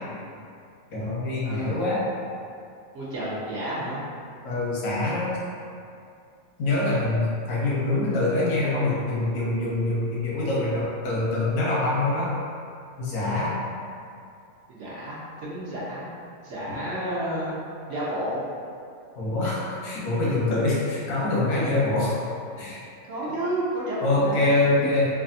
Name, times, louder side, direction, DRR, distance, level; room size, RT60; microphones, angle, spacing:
voice 1, 0.9-2.1 4.4-5.4 6.6-12.3 13.0-13.6 19.2-22.2 22.6-22.8 24.0-25.1, left 2 dB, 90° left, -6 dB, 1.3 m, -24 dB
voice 2, 1.4-1.8 2.9-4.0 14.7-16.1 16.4-17.6 17.9-18.5 23.1-24.5 24.8-24.9, right 1 dB, 65° right, -7 dB, 0.9 m, -31 dB
3.3 x 2.2 x 2.6 m, 2.5 s
omnidirectional pair, 1.5 m